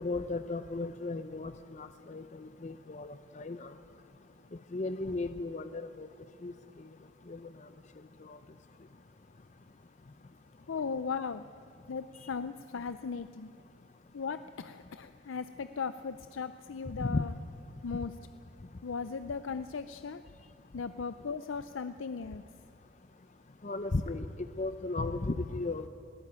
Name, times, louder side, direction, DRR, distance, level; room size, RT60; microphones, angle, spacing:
voice 1, 0.0-1.5 1.8-2.2 2.6-3.7 4.7-6.1 6.4-6.5 7.3-7.4 8.3-8.4 17.0-17.2 23.6-24.3 24.6-25.8, left 3 dB, 40° left, 10 dB, 0.6 m, -35 dB
voice 2, 10.7-11.4 11.9-13.5 14.1-17.3 17.8-18.1 18.8-20.2 20.7-22.4, left 5 dB, 90° left, 12 dB, 0.5 m, -37 dB
21.0 x 16.0 x 8.7 m, 2.9 s
head